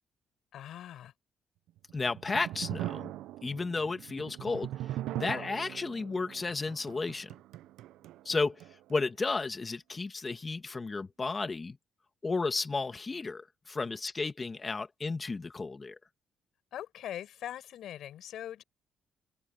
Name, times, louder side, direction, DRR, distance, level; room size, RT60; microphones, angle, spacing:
voice 1, 0.5-1.1 5.2-5.5 16.7-18.6, left 11 dB, 75° left, 5.0 m, -42 dB
sound 1, 1.8-9.0, right 14 dB, 90° right, 0.6 m, -41 dB
voice 2, 1.9-3.1 3.4-4.7 5.1-7.3 8.3-8.6 8.9-11.8 12.2-16.0, left 3 dB, 30° left, 2.2 m, -33 dB
cardioid pair, 90°, 0 cm